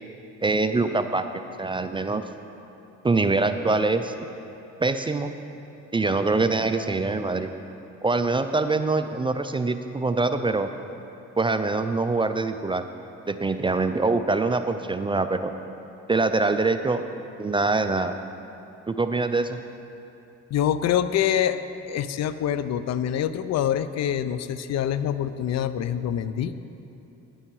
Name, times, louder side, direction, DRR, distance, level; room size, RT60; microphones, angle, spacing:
voice 1, 0.4-2.2 3.0-4.1 4.8-5.3 5.9-7.5 8.0-10.7 11.4-12.8 13.3-15.5 16.1-17.0 17.4-18.1 18.9-19.6, right 3 dB, 15° right, 9 dB, 0.4 m, -24 dB
voice 2, 20.5-21.6 21.9-26.5, left 10 dB, 60° left, 13 dB, 0.5 m, -25 dB
9.8 x 8.8 x 4.7 m, 2.8 s
cardioid pair, 90°, 30 cm